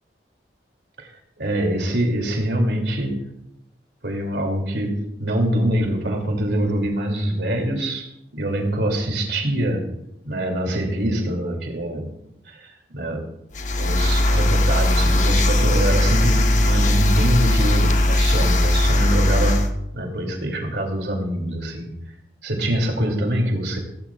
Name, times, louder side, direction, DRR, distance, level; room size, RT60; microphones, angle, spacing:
voice 1, 1.4-3.2 4.0-8.1 8.3-9.8 10.2-12.1 12.5-13.2 13.8-21.9 22.4-23.8, right 1 dB, 80° right, 2 dB, 2.8 m, -24 dB
sound 1, 13.5-19.7, left 1 dB, 45° left, 0.9 m, -18 dB
17.0 x 17.0 x 2.5 m, 0.82 s
head